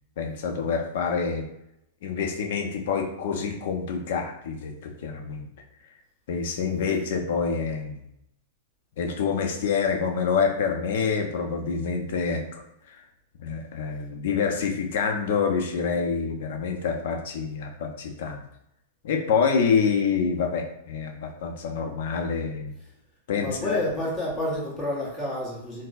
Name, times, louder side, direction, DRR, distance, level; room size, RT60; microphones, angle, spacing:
voice 1, 0.2-1.4 2.0-5.5 6.3-8.0 9.0-13.0 13.4-18.4 19.0-22.7 23.3-23.8, left 5 dB, 60° left, 3 dB, 0.6 m, -27 dB
voice 2, 23.4-25.9, left 1 dB, 15° left, -5 dB, 1.1 m, -30 dB
4.2 x 2.1 x 2.5 m, 0.81 s
supercardioid pair, 155°, 0 cm